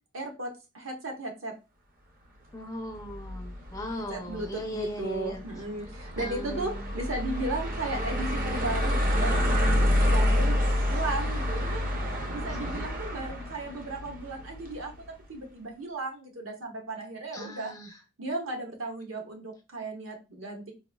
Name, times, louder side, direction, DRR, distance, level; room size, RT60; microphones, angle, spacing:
voice 1, 0.1-1.5 3.9-9.5 10.0-10.6 10.8-11.8 12.4-14.9 15.3-17.7 18.2-20.7, right 2 dB, 65° right, 1 dB, 1.0 m, -35 dB
voice 2, 2.5-5.4 6.2-6.9 12.6-12.8 17.3-17.9, equal, 15° left, 4 dB, 0.4 m, -38 dB
sound 1, 2.9-15.1, left 1 dB, 40° right, 0.6 m, -28 dB
4.0 x 2.4 x 2.2 m, 0.28 s
head